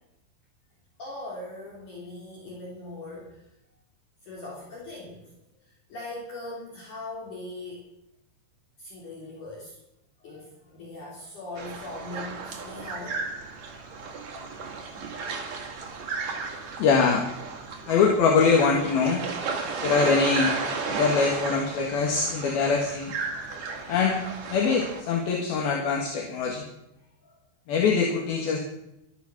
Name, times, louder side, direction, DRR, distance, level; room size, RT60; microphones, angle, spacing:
voice 1, 1.0-3.4 4.2-5.3 5.6-7.9 8.8-9.8 10.2-13.2 27.2-27.4, left 2 dB, 50° left, -4 dB, 4.4 m, -40 dB
sound 1, 11.5-25.0, right 4 dB, 45° right, 3.2 m, -34 dB
voice 2, 16.8-17.2 17.9-19.2 19.8-20.5 20.9-23.1 23.9-24.2 24.5-26.6 27.7-28.6, left 5 dB, 70° left, 1 dB, 3.5 m, -23 dB
14.5 x 13.0 x 6.1 m, 0.85 s
omnidirectional pair, 4.7 m